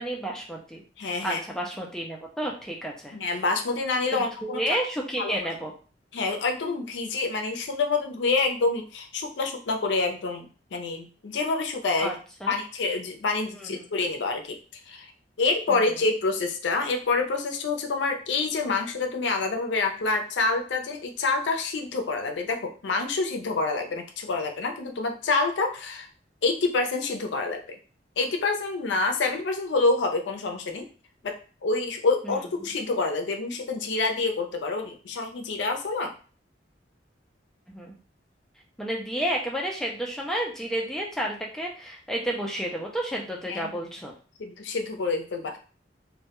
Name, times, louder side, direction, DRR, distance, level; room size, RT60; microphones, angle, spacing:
voice 1, 0.0-0.8 1.2-3.1 4.1-5.7 12.0-12.1 12.4-12.5 13.6-13.8 15.7-15.9 32.2-32.4 37.7-38.0 38.8-44.1, right 1 dB, 5° left, -1 dB, 0.3 m, -31 dB
voice 2, 1.0-1.4 3.1-4.6 5.2-5.4 6.1-12.1 12.5-14.6 14.9-15.1 15.4-26.1 26.4-27.8 28.2-30.8 31.2-36.1 43.5-43.7 44.4-45.6, left 3 dB, 85° left, 4 dB, 0.5 m, -27 dB
2.2 x 2.1 x 2.9 m, 0.38 s
head